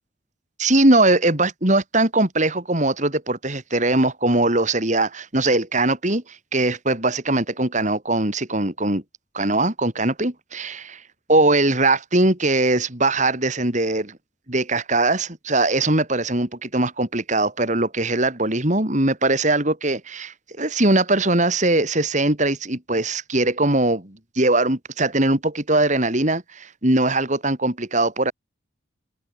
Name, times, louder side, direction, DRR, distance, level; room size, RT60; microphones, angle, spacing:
voice 1, 0.6-9.0 9.3-11.0 11.3-14.2 14.5-28.3, right 2 dB, 40° right, 3.4 m, -21 dB
open air
head